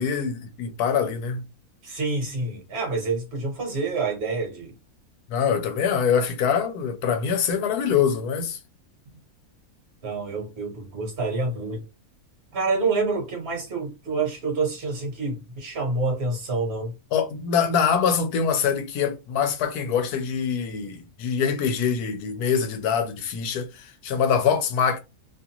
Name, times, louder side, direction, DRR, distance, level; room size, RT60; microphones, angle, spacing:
voice 1, 0.0-1.4 5.3-8.6 17.1-25.0, left 7 dB, 90° left, 1.2 m, -24 dB
voice 2, 1.8-4.7 9.1-9.2 10.0-11.9 12.5-16.9, right 3 dB, 45° right, 1.3 m, -27 dB
2.9 x 2.4 x 2.8 m
omnidirectional pair, 1.6 m